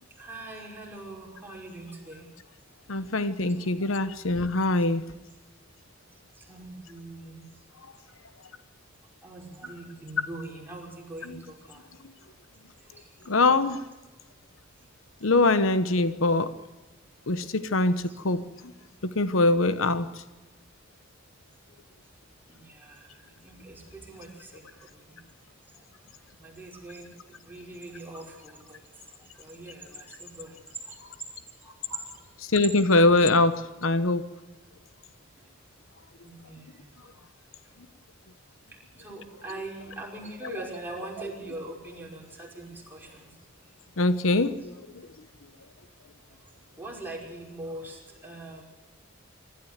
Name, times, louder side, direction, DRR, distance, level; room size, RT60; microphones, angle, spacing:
voice 1, 0.2-2.3 3.9-4.0 6.4-7.4 9.2-11.8 12.9-13.0 22.5-23.1 23.4-24.7 24.9-25.1 26.4-27.1 27.4-28.8 29.4-30.5 31.6-32.0 36.2-36.8 38.9-43.3 46.8-48.6, right 2 dB, 10° right, -2 dB, 5.4 m, -42 dB
voice 2, 2.9-5.0 11.2-11.4 13.3-13.8 15.2-16.5 17.3-18.4 19.0-20.1 32.5-34.3 40.4-40.6 44.0-44.7, left 2 dB, 80° left, 13 dB, 1.0 m, -23 dB
24.5 x 13.5 x 8.1 m, 1.2 s
head